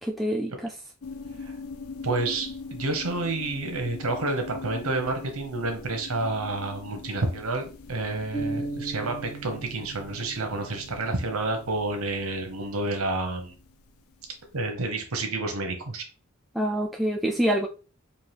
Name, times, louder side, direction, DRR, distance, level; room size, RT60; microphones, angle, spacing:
voice 1, 0.0-0.5 16.5-17.7, equal, ahead, 0.3 m, -25 dB
sound 1, 1.0-14.4, left 4 dB, 75° left, 0.4 m, -43 dB
voice 2, 2.0-13.5 14.5-16.1, right 2 dB, 75° right, 0.8 m, -29 dB
sound 2, 8.3-12.1, right 3 dB, 15° left, 1.5 m, -37 dB
4.5 x 2.5 x 3.3 m
head